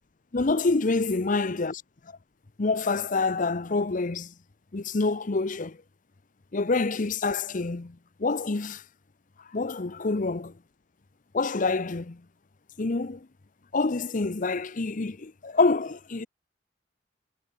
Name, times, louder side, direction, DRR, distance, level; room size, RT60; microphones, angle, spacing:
voice 1, 0.3-1.8 2.1-2.2 2.6-4.3 4.7-5.8 6.5-8.8 9.5-10.5 11.3-12.2 12.8-13.3 13.7-16.3, left 3 dB, 45° left, 0.7 m, -27 dB
head